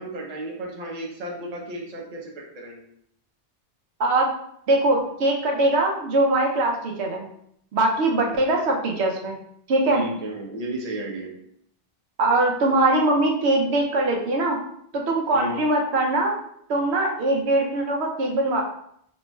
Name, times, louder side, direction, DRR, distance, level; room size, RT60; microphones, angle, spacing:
voice 1, 0.0-2.9 9.9-11.3 15.3-15.6, right 1 dB, 40° right, -1 dB, 0.8 m, -33 dB
voice 2, 4.7-7.2 7.7-9.4 9.7-10.0 12.2-14.6 14.9-16.3 16.7-18.6, right 2 dB, 85° right, 0 dB, 1.0 m, -22 dB
4.2 x 3.0 x 2.2 m, 0.69 s
omnidirectional pair, 1.1 m